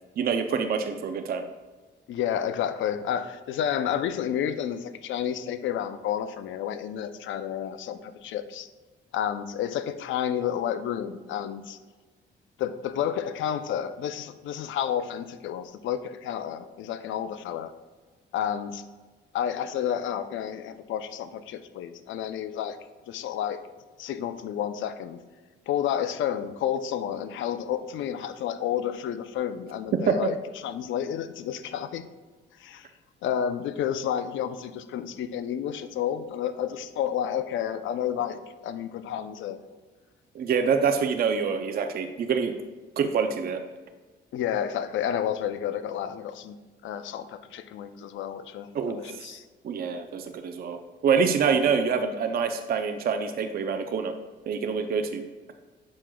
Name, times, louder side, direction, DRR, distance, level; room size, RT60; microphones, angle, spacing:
voice 1, 0.2-1.4 30.1-30.3 40.3-42.6 43.0-43.6 48.7-49.2 49.6-50.8 51.0-54.2 54.5-55.2, right 6 dB, 50° right, 6 dB, 0.5 m, -26 dB
voice 2, 2.1-8.7 9.1-11.8 12.6-17.7 18.3-18.8 19.3-22.8 23.1-23.6 24.0-25.2 25.7-32.1 32.6-32.9 33.2-39.6 44.3-46.6 46.8-49.5, left 9 dB, 75° left, 11 dB, 0.5 m, -30 dB
7.5 x 6.1 x 2.3 m, 1.3 s
cardioid pair, 90°, 20 cm